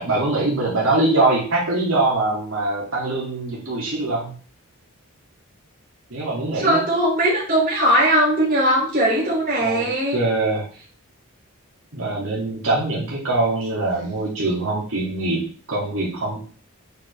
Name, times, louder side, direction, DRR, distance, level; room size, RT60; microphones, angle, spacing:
voice 1, 0.0-4.3 6.1-6.8 9.6-9.9 10.1-10.7 11.9-16.5, right 2 dB, 75° right, -6 dB, 2.6 m, -23 dB
voice 2, 6.6-10.2, right 1 dB, 40° right, -5 dB, 3.5 m, -19 dB
8.1 x 5.1 x 3.5 m, 0.42 s
head